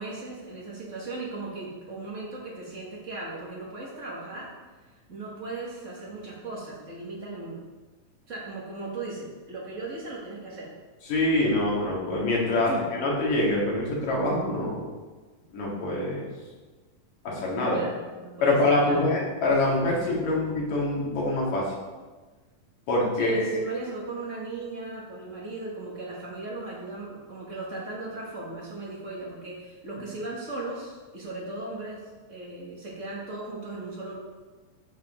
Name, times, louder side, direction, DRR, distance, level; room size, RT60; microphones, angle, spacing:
voice 1, 0.0-4.5 5.1-7.6 8.3-10.7 12.6-12.9 17.7-19.1 23.1-34.2, right 2 dB, 45° right, -4 dB, 0.9 m, -37 dB
voice 2, 11.1-14.9 15.5-16.3 17.2-17.8 18.4-21.7 22.9-23.6, left 2 dB, 55° left, -4 dB, 3.1 m, -25 dB
14.0 x 5.0 x 3.7 m, 1.3 s
omnidirectional pair, 4.2 m